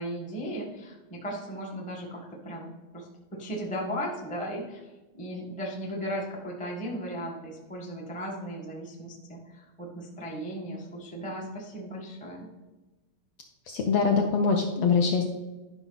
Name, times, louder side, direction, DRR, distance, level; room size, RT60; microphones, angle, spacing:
voice 1, 0.0-12.5, equal, 10° left, -1 dB, 0.4 m, -36 dB
voice 2, 13.7-15.3, left 5 dB, 70° left, 2 dB, 1.4 m, -23 dB
11.0 x 5.6 x 4.0 m, 1.1 s
omnidirectional pair, 3.3 m